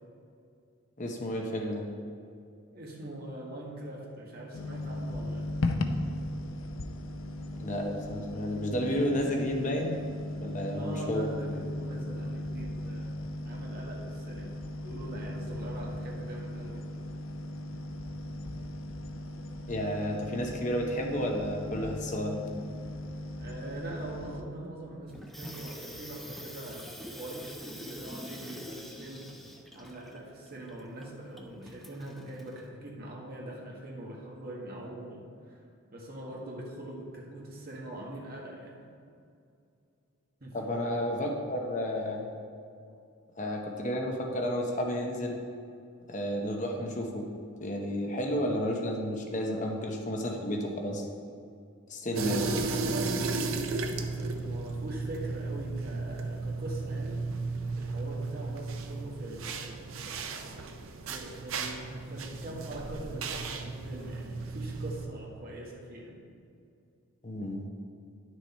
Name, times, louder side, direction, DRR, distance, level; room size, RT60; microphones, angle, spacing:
voice 1, 1.0-1.9 7.5-10.0 10.4-11.3 19.7-22.4 40.5-42.3 43.4-45.4 46.1-47.2 47.6-51.0 51.9-52.4 67.2-67.6, equal, 35° left, 1 dB, 0.8 m, -31 dB
voice 2, 2.7-5.4 10.7-16.8 23.4-29.3 29.7-35.6 35.9-38.9 40.4-40.5 42.9-43.0 52.3-57.2 57.7-60.2 61.0-66.2, right 1 dB, 45° right, -2 dB, 1.6 m, -42 dB
sound 1, 4.5-24.4, left 1 dB, 65° left, 0.6 m, -37 dB
Water tap faucet / Sink (filling or washing), 25.1-32.7, equal, ahead, 0.4 m, -46 dB
sound 2, 52.2-65.1, right 3 dB, 70° right, 0.7 m, -35 dB
10.0 x 6.3 x 4.3 m, 2.4 s
head